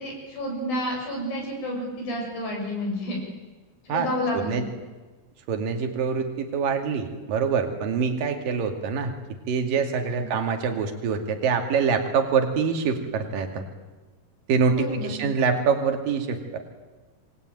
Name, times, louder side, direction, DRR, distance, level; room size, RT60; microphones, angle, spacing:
voice 1, 0.0-3.2 3.8-4.6 10.1-10.2 14.7-15.2, left 1 dB, 70° left, 0 dB, 8.8 m, -30 dB
voice 2, 5.5-9.1 9.5-13.6 14.5-16.6, right 5 dB, 65° right, 4 dB, 4.1 m, -25 dB
27.5 x 23.0 x 9.3 m, 1.2 s
omnidirectional pair, 4.3 m